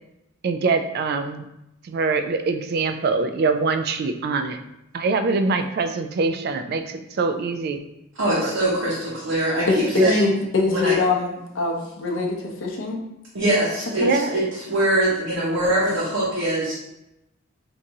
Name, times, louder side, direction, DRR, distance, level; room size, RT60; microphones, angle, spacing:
voice 1, 0.4-1.4 1.8-4.6 4.9-7.8 8.4-8.5 10.0-10.1 13.9-14.3, right 4 dB, 55° right, 8 dB, 0.3 m, -23 dB
voice 2, 8.2-10.3 10.7-10.9 13.3-16.7, right 1 dB, 75° right, -7 dB, 0.9 m, -23 dB
voice 3, 9.7-13.0 14.0-14.2, left 3 dB, 70° left, -1 dB, 0.6 m, -23 dB
4.6 x 2.6 x 2.7 m, 0.87 s
head